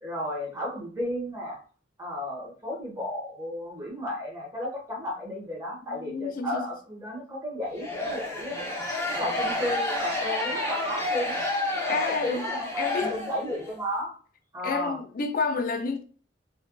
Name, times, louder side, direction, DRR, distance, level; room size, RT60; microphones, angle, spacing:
voice 1, 0.0-1.6 2.0-8.6 9.2-11.4 11.7-14.1 14.5-15.0, left 1 dB, 15° right, 1.3 m, -33 dB
voice 2, 5.9-6.7 11.9-12.5 12.8-13.2 14.6-16.0, left 4 dB, 50° left, 0.5 m, -30 dB
sound 1, 7.8-13.7, left 1 dB, 15° left, 0.7 m, -30 dB
4.3 x 2.6 x 2.3 m
head